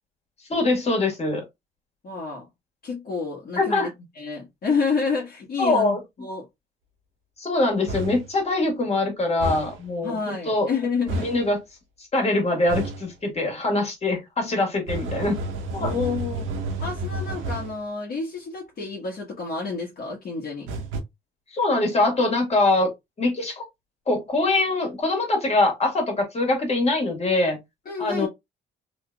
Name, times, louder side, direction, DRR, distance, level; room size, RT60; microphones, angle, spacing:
voice 1, 0.5-1.4 3.6-3.9 5.6-6.0 7.4-10.7 11.2-11.6 12.1-15.4 15.7-15.9 21.5-22.9 23.2-23.6 24.1-27.6 28.0-28.3, left 2 dB, 30° left, 1.7 m, -23 dB
voice 2, 2.0-2.5 2.8-3.9 4.1-6.5 10.0-11.3 15.8-16.5 16.8-20.7 27.8-28.3, left 5 dB, 50° left, 1.3 m, -29 dB
sound 1, 7.9-8.3 9.4-9.8 11.1-11.5 12.7-13.1 14.9-17.8 20.7-21.0, right 2 dB, 85° right, 1.0 m, -30 dB
3.2 x 3.0 x 2.3 m
cardioid pair, 90°, 20 cm